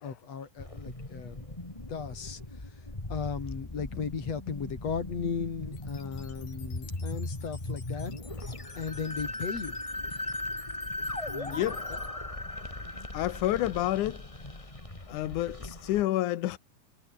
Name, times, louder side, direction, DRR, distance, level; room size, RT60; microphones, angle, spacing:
voice 1, 0.0-1.5 1.9-2.4 3.1-8.2 8.8-9.8 11.0-11.6 11.9-12.0, left 6 dB, 40° left, 4.2 m, -36 dB
sound 1, 0.6-16.0, left 2 dB, 10° left, 1.5 m, -38 dB
sound 2, 5.7-12.1, left 5 dB, 60° left, 7.7 m, -54 dB
voice 2, 11.5-11.8 13.1-14.2 15.1-16.6, left 14 dB, 80° left, 1.8 m, -29 dB
omnidirectional pair, 5.0 m